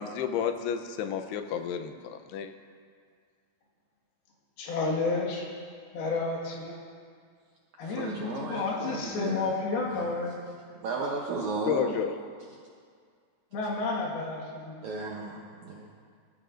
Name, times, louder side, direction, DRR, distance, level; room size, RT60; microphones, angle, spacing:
voice 1, 0.0-2.5 11.7-12.1, left 8 dB, 90° left, 8 dB, 2.8 m, -31 dB
voice 2, 4.6-5.5 5.9-6.8 7.8-10.5 13.5-14.8, left 3 dB, 70° left, -3 dB, 3.6 m, -31 dB
voice 3, 7.8-9.5 9.9-10.1 10.8-12.0 14.8-15.9, right 4 dB, 85° right, -2 dB, 1.6 m, -35 dB
20.0 x 14.0 x 2.5 m, 2.1 s
omnidirectional pair, 4.6 m